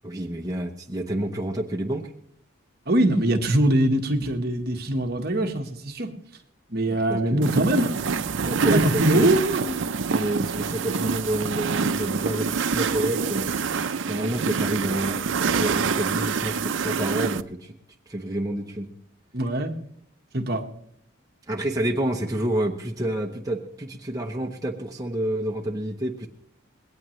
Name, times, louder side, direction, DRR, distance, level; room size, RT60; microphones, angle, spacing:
voice 1, 0.0-2.1 6.9-7.6 8.5-9.3 10.0-13.5 14.1-15.2 15.6-17.7 18.1-18.9 21.5-26.3, right 1 dB, 15° right, 0 dB, 0.8 m, -29 dB
voice 2, 2.9-6.1 6.7-8.0 8.7-9.9 19.3-19.7 20.3-20.6, right 1 dB, 50° right, 4 dB, 1.3 m, -23 dB
sound 1, 7.4-17.4, right 5 dB, 65° right, 0.5 m, -26 dB
20.5 x 18.0 x 3.2 m, 0.73 s
head